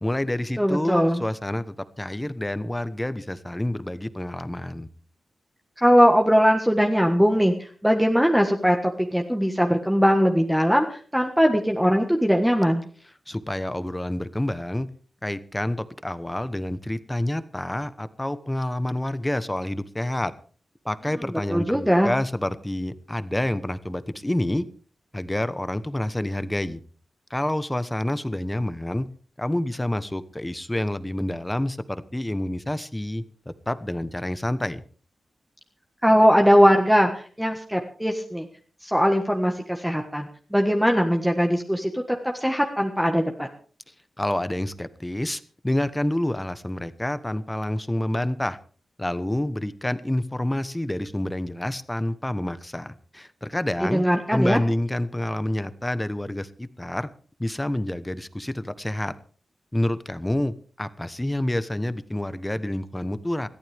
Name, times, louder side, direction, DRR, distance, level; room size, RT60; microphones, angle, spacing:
voice 1, 0.0-4.9 13.3-14.9 15.2-20.3 20.8-24.6 25.1-26.8 27.3-29.1 29.4-33.2 33.7-34.8 44.2-48.6 49.0-54.0 54.3-57.1 57.4-59.1 59.7-63.5, left 1 dB, 15° left, 13 dB, 1.1 m, -28 dB
voice 2, 0.6-1.2 5.8-12.9 21.5-22.1 36.0-38.5 38.8-42.0 42.3-43.5 53.8-54.6, equal, 5° right, 3 dB, 1.6 m, -20 dB
21.5 x 14.0 x 3.5 m, 0.42 s
wide cardioid pair, 85°, 0 cm